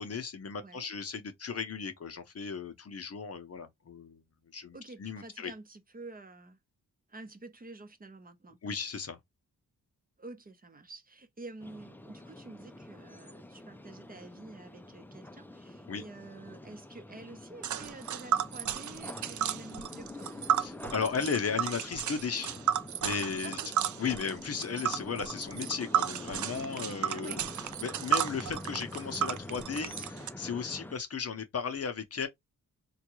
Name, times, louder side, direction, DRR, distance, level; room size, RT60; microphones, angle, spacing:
voice 1, 0.0-4.2 4.5-5.5 8.6-9.2 15.9-16.0 20.6-22.5 23.0-23.6 24.0-32.3, left 5 dB, 45° left, 0.7 m, -35 dB
voice 2, 0.5-0.9 4.7-6.6 7.1-8.6 10.2-20.3 23.4-23.7 27.1-27.4, right 2 dB, 25° right, 0.7 m, -48 dB
sound 1, 11.6-31.0, left 1 dB, 5° left, 0.4 m, -46 dB
Tick, 17.6-30.3, right 10 dB, 60° right, 0.4 m, -33 dB
3.7 x 2.3 x 3.0 m
cardioid pair, 90°, 34 cm